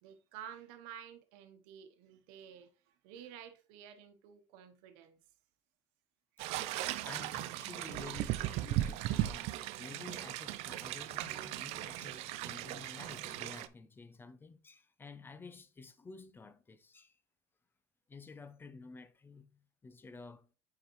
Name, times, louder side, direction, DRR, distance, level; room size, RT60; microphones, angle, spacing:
voice 1, 0.0-5.2 11.8-12.0, right 9 dB, 85° right, 1.0 m, -52 dB
sound 1, 6.4-13.7, right 15 dB, 70° right, 0.5 m, -37 dB
voice 2, 7.0-17.2 18.1-20.5, left 4 dB, 20° left, 0.5 m, -51 dB
6.7 x 4.9 x 3.0 m
cardioid pair, 125°, 11 cm